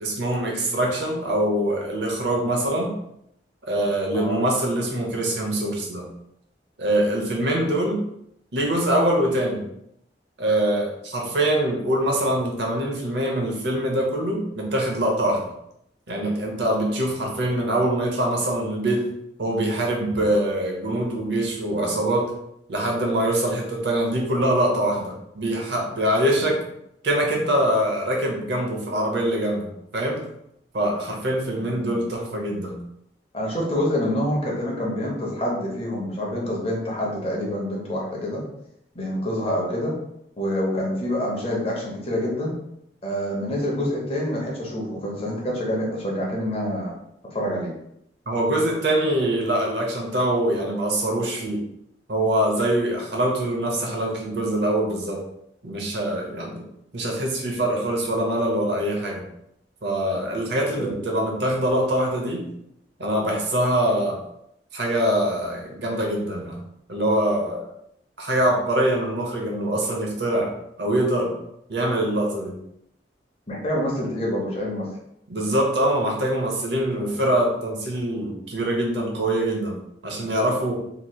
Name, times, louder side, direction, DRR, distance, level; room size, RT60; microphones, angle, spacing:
voice 1, 0.0-2.9 3.6-6.1 6.8-8.0 8.5-9.7 10.4-15.5 16.1-19.1 19.4-22.3 22.7-26.6 27.0-30.3 30.7-32.8 48.3-51.6 52.1-55.2 55.6-56.6 56.9-59.3 59.8-62.5 63.0-64.2 64.7-66.6 66.9-67.7 68.2-70.5 70.8-71.3 71.7-72.6 75.3-80.8, right 1 dB, 75° right, 0 dB, 0.8 m, -24 dB
voice 2, 31.6-32.0 33.3-38.4 38.9-39.9 40.4-42.5 43.0-47.0 47.3-47.7 60.8-60.9 73.5-74.9, equal, 35° left, -3 dB, 0.9 m, -27 dB
3.2 x 2.9 x 2.3 m, 0.76 s
head